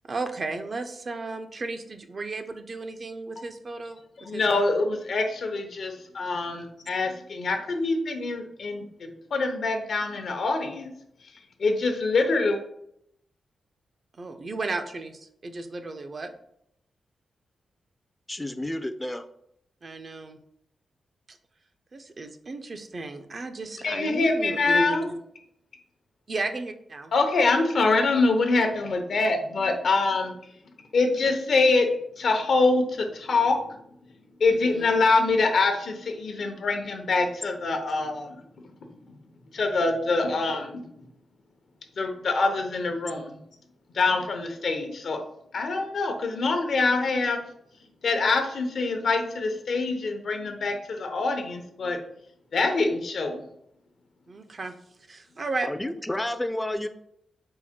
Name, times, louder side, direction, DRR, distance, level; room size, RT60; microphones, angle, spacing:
voice 1, 0.1-4.6 14.2-16.3 19.8-20.4 21.3-21.4 21.9-25.2 26.3-27.1 34.5-34.9 54.3-54.7 55.1-55.7, right 3 dB, 50° right, 7 dB, 0.5 m, -34 dB
voice 2, 4.2-10.9 11.6-12.6 23.8-25.1 27.1-30.3 30.9-31.9 32.2-33.6 34.4-38.4 39.5-40.9 42.0-43.4 43.9-45.2 45.5-47.4 48.0-52.0 52.5-53.4, left 3 dB, 70° left, 5 dB, 0.7 m, -25 dB
voice 3, 18.3-19.2 55.6-56.9, left 1 dB, 15° left, 9 dB, 0.4 m, -30 dB
4.6 x 2.1 x 4.3 m, 0.74 s
cardioid pair, 55°, 0 cm